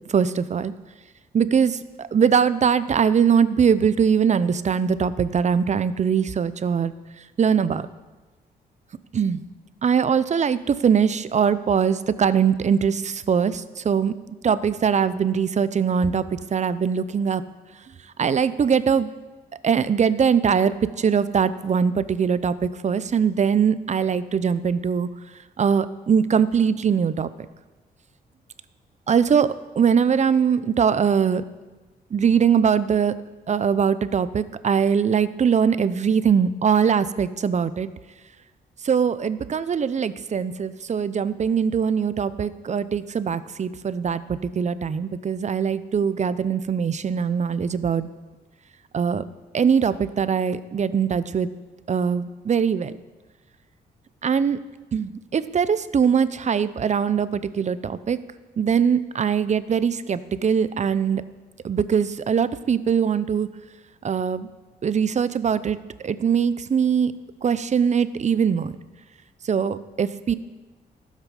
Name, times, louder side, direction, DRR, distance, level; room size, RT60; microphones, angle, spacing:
voice 1, 0.1-0.7 1.3-6.9 7.4-7.9 9.1-9.4 9.8-14.1 14.4-17.4 18.2-19.1 19.6-25.1 25.6-27.3 29.1-31.4 32.1-33.1 33.5-37.9 38.8-48.1 48.9-49.2 49.5-51.5 51.9-52.9 54.2-54.6 54.9-58.2 58.6-61.2 61.6-63.5 64.0-64.5 64.8-65.8 66.0-67.1 67.4-68.7 69.5-70.3, right 7 dB, 40° right, 15 dB, 0.6 m, -21 dB
12.5 x 7.4 x 5.5 m, 1.2 s
cardioid pair, 75°, 17 cm